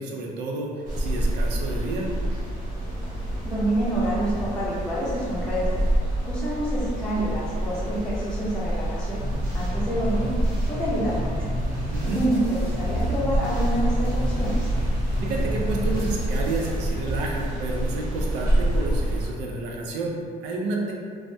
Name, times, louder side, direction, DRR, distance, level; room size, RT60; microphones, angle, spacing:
voice 1, 0.0-2.1 11.9-12.2 15.2-20.9, right 3 dB, 90° right, -1 dB, 0.5 m, -30 dB
sound 1, 0.8-19.3, right 1 dB, 50° right, 0.8 m, -27 dB
voice 2, 3.4-5.7 6.2-9.2 9.5-10.3 10.7-11.5 12.0-14.7, right 1 dB, 5° left, -9 dB, 0.6 m, -27 dB
sound 2, 9.2-17.2, equal, 70° right, 1.1 m, -33 dB
3.3 x 2.0 x 2.6 m, 2.1 s
cardioid pair, 110°, 17 cm